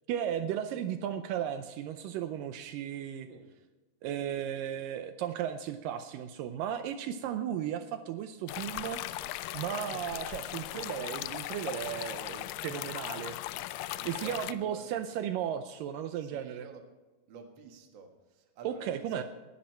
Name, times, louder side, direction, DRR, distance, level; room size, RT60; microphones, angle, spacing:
voice 1, 0.1-3.3 4.0-9.0 9.5-13.4 14.1-16.7 18.7-19.2, right 9 dB, 80° right, 9 dB, 2.2 m, -35 dB
sound 1, 8.5-14.5, left 15 dB, 80° left, 2.1 m, -38 dB
voice 2, 14.0-15.0 16.1-16.9 17.3-19.2, right 5 dB, 45° right, 4 dB, 1.6 m, -50 dB
18.5 x 11.5 x 4.4 m, 1.2 s
omnidirectional pair, 4.1 m